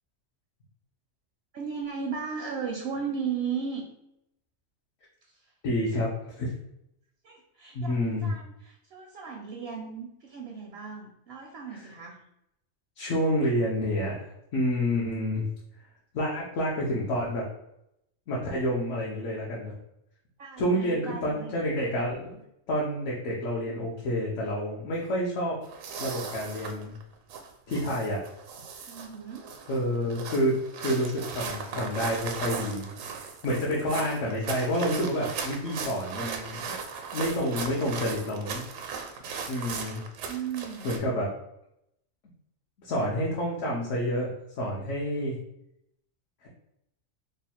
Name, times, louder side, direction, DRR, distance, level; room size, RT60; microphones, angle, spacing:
voice 1, 1.5-3.8 5.3-5.5 7.2-12.2 20.4-21.5 28.8-29.5 40.3-40.9, right 6 dB, 65° right, 2 dB, 0.6 m, -36 dB
voice 2, 5.6-6.5 7.7-8.3 11.7-11.8 13.0-15.5 16.1-17.5 18.3-19.7 20.6-22.4 22.7-25.6 26.0-27.0 27.7-28.2 29.7-32.9 33.4-36.8 37.1-38.6 39.5-40.0 40.8-41.3 42.8-45.4, equal, 70° left, -4 dB, 1.1 m, -29 dB
sound 1, 25.6-41.0, right 5 dB, 85° right, 1.0 m, -38 dB
3.2 x 2.2 x 4.2 m, 0.80 s
omnidirectional pair, 1.4 m